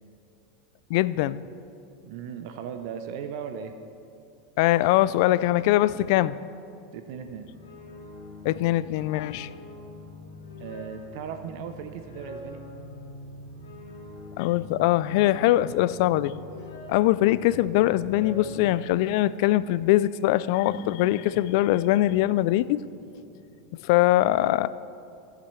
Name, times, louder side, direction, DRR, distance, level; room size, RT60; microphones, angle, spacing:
voice 1, 0.9-1.4 4.6-6.4 8.4-9.5 14.4-16.3 16.9-22.8 23.8-24.7, left 15 dB, 60° left, 17 dB, 0.3 m, -22 dB
voice 2, 2.0-3.8 6.9-7.5 10.6-12.6, right 7 dB, 65° right, 8 dB, 0.7 m, -37 dB
sound 1, 7.0-18.8, left 2 dB, 90° left, 2.7 m, -44 dB
sound 2, 20.7-24.0, left 1 dB, 20° left, 1.0 m, -47 dB
17.0 x 7.6 x 3.2 m, 2.6 s
hypercardioid pair, 115°, 2 cm